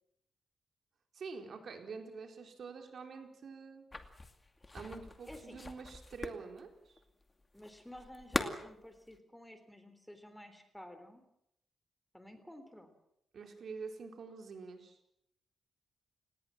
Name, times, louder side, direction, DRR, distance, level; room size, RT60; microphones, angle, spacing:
voice 1, 1.1-3.9 4.7-6.9 13.3-15.0, right 5 dB, 60° right, 4 dB, 4.3 m, -46 dB
sound 1, 3.9-9.2, left 2 dB, 20° left, 2.4 m, -42 dB
voice 2, 5.3-5.6 7.5-11.2 12.1-12.9, left 1 dB, 5° left, 9 dB, 3.5 m, -51 dB
30.0 x 19.0 x 7.6 m, 0.78 s
wide cardioid pair, 120°, 0 cm